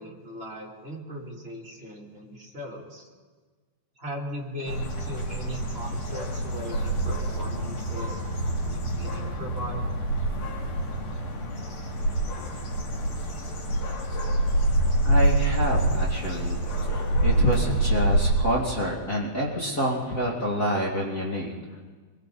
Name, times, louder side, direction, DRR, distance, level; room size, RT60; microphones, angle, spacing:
voice 1, 0.0-3.1 4.0-9.9, equal, 20° right, -3 dB, 3.4 m, -38 dB
sound 1, 4.7-18.3, right 1 dB, 85° left, 5.0 m, -26 dB
voice 2, 15.0-16.6 16.9-21.5, equal, 25° left, -3 dB, 2.6 m, -27 dB
27.5 x 22.5 x 4.3 m, 1.5 s
omnidirectional pair, 3.6 m